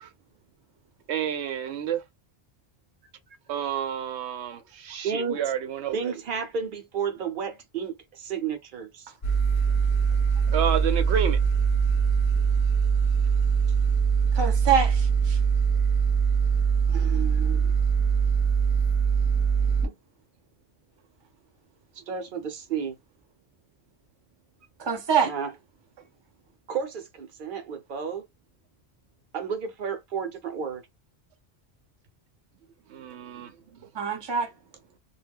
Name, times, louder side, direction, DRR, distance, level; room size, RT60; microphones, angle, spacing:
voice 1, 1.1-2.0 3.5-5.9 10.5-11.4 32.9-33.5, right 9 dB, 85° right, 0.9 m, -29 dB
voice 2, 5.0-5.4 5.9-9.1 16.9-17.7 21.9-22.9 25.2-25.5 26.7-28.2 29.3-30.8, right 6 dB, 55° right, 0.8 m, -32 dB
sound 1, 9.2-19.9, right 6 dB, 40° left, 0.6 m, -22 dB
voice 3, 14.3-15.4 24.8-25.3 33.9-34.5, right 6 dB, 30° right, 0.6 m, -25 dB
2.2 x 2.1 x 3.4 m
omnidirectional pair, 1.1 m